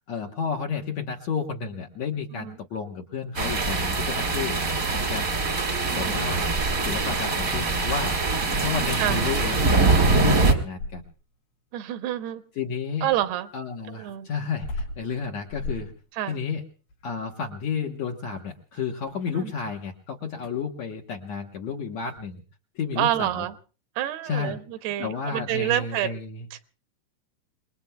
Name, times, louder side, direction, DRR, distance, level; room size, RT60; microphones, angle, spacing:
voice 1, 0.1-4.6 4.9-5.3 5.9-6.5 6.8-8.1 8.6-11.0 12.6-13.1 13.5-15.9 16.3-16.6 17.0-22.4 22.7-23.4 24.2-24.6 25.0-26.5, left 6 dB, 65° left, 1.7 m, -31 dB
sound 1, 3.3-10.5, right 3 dB, 40° right, 1.1 m, -23 dB
voice 2, 5.8-6.3 9.0-9.2 11.7-12.4 13.0-13.5 13.9-14.3 16.1-16.4 19.3-19.5 23.0-23.5 24.0-26.1 26.5-26.7, right 12 dB, 80° right, 2.9 m, -28 dB
sound 2, 10.7-11.4 13.1-20.0 20.3-20.7 22.0-22.3, left 2 dB, 85° left, 6.6 m, -39 dB
29.0 x 21.0 x 2.3 m
omnidirectional pair, 4.6 m